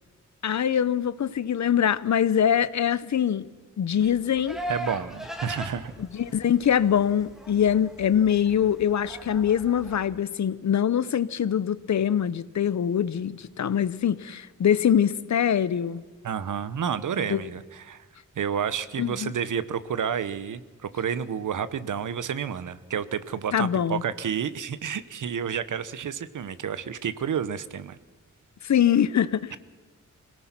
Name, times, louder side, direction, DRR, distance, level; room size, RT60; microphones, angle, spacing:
voice 1, 0.4-3.5 3.8-4.6 6.0-16.0 17.3-17.4 19.0-19.3 23.5-24.0 28.6-29.6, left 9 dB, 65° left, 0.8 m, -23 dB
Livestock farm animals working animals, 4.0-10.1, equal, ahead, 2.0 m, -40 dB
voice 2, 4.7-5.9 16.2-18.0 18.4-28.0, right 7 dB, 80° right, 0.9 m, -30 dB
25.5 x 17.5 x 6.0 m
wide cardioid pair, 175°, 31 cm